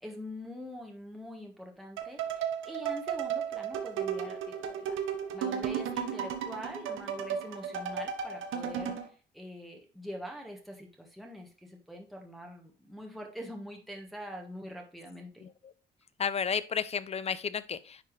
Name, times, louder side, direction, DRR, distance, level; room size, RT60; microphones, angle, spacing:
voice 1, 0.0-4.9 5.3-15.5, equal, ahead, 0 dB, 1.3 m, -44 dB
sound 1, 2.0-9.1, right 8 dB, 85° right, 1.0 m, -34 dB
voice 2, 15.4-15.7 16.2-18.0, left 6 dB, 30° left, 16 dB, 0.5 m, -32 dB
9.8 x 3.4 x 3.2 m, 0.37 s
cardioid pair, 90°, 20 cm